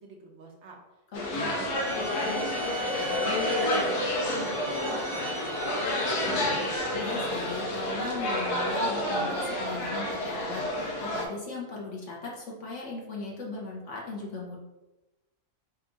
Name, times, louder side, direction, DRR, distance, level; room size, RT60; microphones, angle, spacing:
voice 1, 0.0-0.8 1.2-6.9, right 2 dB, 60° right, 1 dB, 0.8 m, -46 dB
sound 1, 1.1-11.3, left 1 dB, 85° left, 1.3 m, -29 dB
sound 2, 1.7-6.8, right 1 dB, 80° right, 0.5 m, -38 dB
voice 2, 7.0-14.6, left 3 dB, 55° left, -3 dB, 1.0 m, -38 dB
3.6 x 2.5 x 4.5 m, 1.0 s
omnidirectional pair, 1.6 m